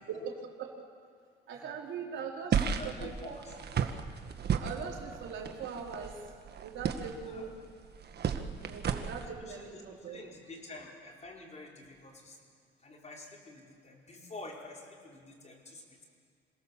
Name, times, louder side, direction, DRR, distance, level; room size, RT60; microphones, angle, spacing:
voice 1, 0.1-0.8 1.5-3.4 4.6-6.2 6.6-7.6 8.5-10.2, right 6 dB, 75° right, -1 dB, 3.7 m, -41 dB
sound 1, 2.5-9.3, right 7 dB, 55° right, 1.5 m, -34 dB
voice 2, 2.6-3.5 7.3-7.5 9.5-12.4 12.8-16.0, left 2 dB, 35° left, -1 dB, 4.7 m, -48 dB
27.0 x 17.5 x 7.3 m, 2.1 s
cardioid pair, 90°, 20 cm